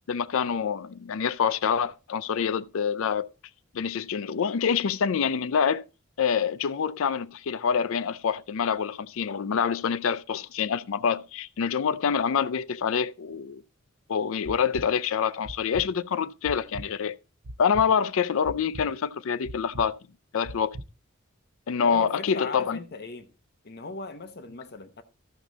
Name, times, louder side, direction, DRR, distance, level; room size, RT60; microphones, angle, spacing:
voice 1, 0.1-3.3 3.7-5.8 6.2-13.6 14.1-17.2 17.6-20.0 20.3-20.8 21.7-22.8, left 7 dB, 65° left, 0.4 m, -26 dB
sound 1, 14.4-14.9 15.4-15.9 16.4-16.9 17.4-17.9 18.4-18.9 19.4-19.9 20.4-20.9, right 1 dB, 90° right, 0.7 m, -39 dB
voice 2, 21.8-23.3 23.6-25.0, left 4 dB, 50° left, 0.9 m, -38 dB
13.0 x 6.2 x 3.9 m
head